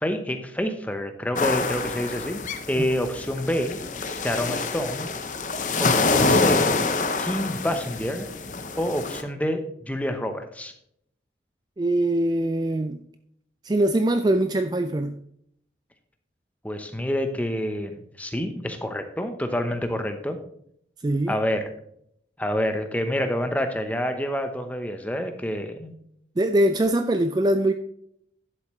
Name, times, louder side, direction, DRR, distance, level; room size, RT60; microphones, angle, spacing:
voice 1, 0.0-2.4 2.7-3.8 4.1-5.1 5.8-6.7 7.2-8.3 8.8-10.7 16.6-20.4 21.3-21.7 22.4-25.9, equal, 10° left, 0.8 m, -28 dB
sound 1, 1.4-9.2, left 3 dB, 45° left, 0.8 m, -26 dB
voice 2, 11.8-13.0 13.6-15.2 21.0-21.4 26.4-27.7, right 1 dB, 20° right, 0.3 m, -22 dB
11.0 x 7.5 x 3.1 m
head